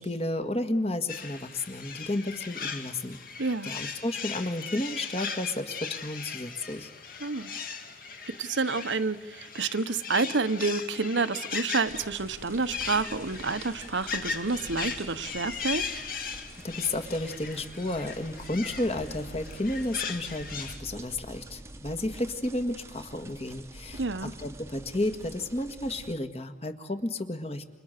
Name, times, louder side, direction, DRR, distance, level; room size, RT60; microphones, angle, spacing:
voice 1, 0.0-3.2 3.6-6.9 16.6-27.7, left 1 dB, 35° left, 9 dB, 1.8 m, -32 dB
Roosting Corellas, 1.1-20.8, left 6 dB, 50° left, 2.6 m, -38 dB
voice 2, 3.4-3.7 7.2-7.5 8.3-15.9 24.0-24.3, right 4 dB, 85° right, 12 dB, 1.2 m, -29 dB
sound 1, 11.9-26.2, right 1 dB, 15° right, 1.1 m, -46 dB
29.5 x 28.5 x 6.8 m, 1.2 s
head